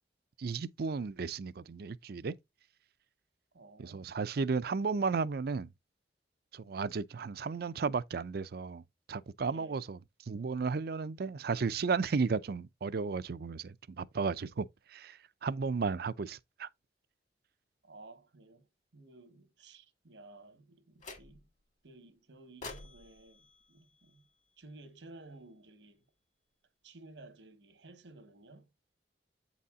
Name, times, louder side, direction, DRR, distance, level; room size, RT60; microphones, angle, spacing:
voice 1, 0.4-2.3 3.8-5.7 6.5-8.8 9.1-10.0 10.3-16.7, right 4 dB, 60° right, 0.5 m, -34 dB
voice 2, 3.5-4.1 4.6-4.7 9.5-9.8 17.8-21.5 21.8-24.3 24.6-26.1 26.8-28.7, right 2 dB, 85° right, 1.2 m, -55 dB
sound 1, 21.0-21.7 22.6-24.8, left 3 dB, 45° left, 1.8 m, -50 dB
8.4 x 4.2 x 3.6 m
head